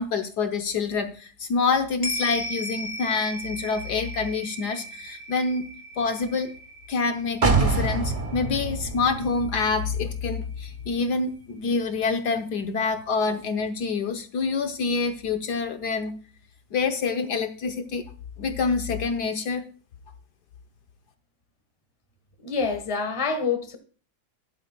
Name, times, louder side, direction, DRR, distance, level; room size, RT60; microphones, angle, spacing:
voice 1, 0.0-5.7 6.0-6.5 6.9-16.1 16.7-18.0 18.4-19.6, left 4 dB, 65° left, 1.4 m, -26 dB
sound 1, 2.0-10.6 10.9-11.0, equal, 40° left, 2.0 m, -38 dB
sound 2, 7.4-11.2 11.5-11.6, right 4 dB, 30° right, 0.7 m, -27 dB
voice 2, 22.4-23.8, left 5 dB, 20° left, 1.3 m, -26 dB
13.5 x 11.5 x 2.2 m
omnidirectional pair, 2.0 m